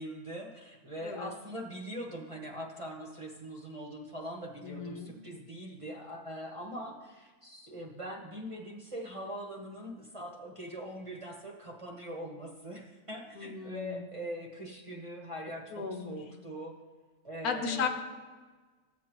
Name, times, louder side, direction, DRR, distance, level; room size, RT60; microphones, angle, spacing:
voice 1, 0.0-16.8 17.2-17.9, equal, 25° right, -1 dB, 0.9 m, -42 dB
voice 2, 4.6-5.1 13.4-14.0 15.7-16.2 17.4-17.9, left 6 dB, 85° left, 5 dB, 1.4 m, -35 dB
14.5 x 8.3 x 3.0 m, 1.4 s
omnidirectional pair, 1.6 m